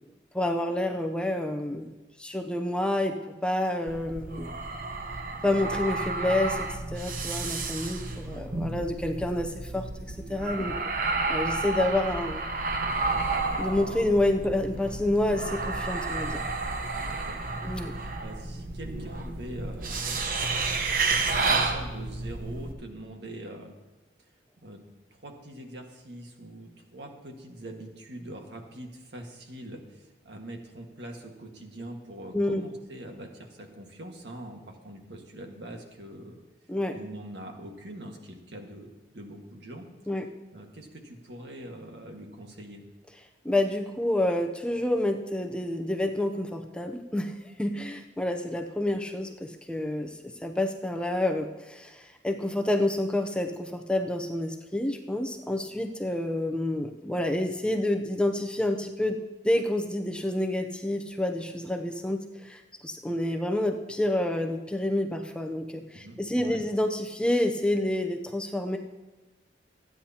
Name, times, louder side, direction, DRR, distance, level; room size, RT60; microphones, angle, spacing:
voice 1, 0.3-1.9 2.2-3.2 3.4-4.5 5.4-10.7 11.3-12.4 13.6-16.4 17.6-17.9 32.3-32.6 36.7-37.0 40.1-40.3 43.4-50.2 50.4-59.2 59.4-68.8, left 1 dB, 5° left, 4 dB, 0.6 m, -28 dB
sound 1, 3.9-22.7, right 3 dB, 50° right, 1.0 m, -31 dB
voice 2, 16.9-17.4 17.9-20.4 21.5-23.7 24.2-24.3 24.6-24.8 25.1-36.4 36.9-39.9 40.5-42.8 65.9-66.6, right 1 dB, 70° right, 2 dB, 1.7 m, -43 dB
25.5 x 9.5 x 2.9 m, 1.1 s
head